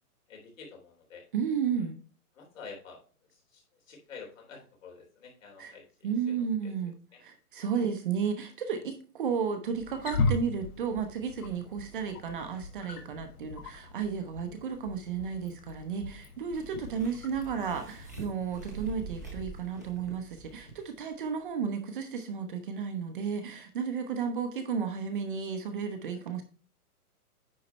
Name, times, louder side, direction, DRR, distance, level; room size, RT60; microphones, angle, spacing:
voice 1, 0.3-1.2 1.8-1.9 2.3-3.0 3.3-7.2 7.7-7.8 26.1-26.3, left 5 dB, 55° left, 0 dB, 3.5 m, -49 dB
voice 2, 1.3-1.9 5.6-5.7 6.0-6.9 7.2-26.4, right 6 dB, 35° right, 6 dB, 0.9 m, -33 dB
Wild animals, 9.7-18.2, left 3 dB, 75° left, 1.8 m, -37 dB
sound 1, 16.5-21.1 21.4-21.5, right 2 dB, 15° right, 0.4 m, -44 dB
9.6 x 4.2 x 4.4 m, 0.38 s
hypercardioid pair, 165°, 45 cm